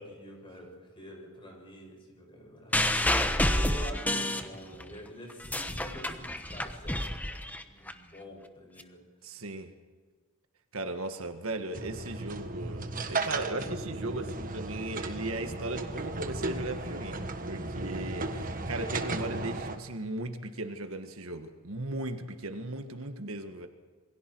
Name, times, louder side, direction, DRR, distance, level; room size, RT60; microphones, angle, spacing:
voice 1, 0.0-9.5, equal, 25° left, 1 dB, 6.7 m, -47 dB
sound 1, 2.7-4.9 5.3-7.9 8.8-8.9, left 1 dB, 5° left, 1.1 m, -29 dB
voice 2, 9.2-9.7 10.7-23.7, right 2 dB, 70° right, 7 dB, 1.7 m, -37 dB
sound 2, 11.7-19.8, right 2 dB, 40° right, 1.6 m, -35 dB
28.0 x 22.5 x 4.7 m, 1.4 s
head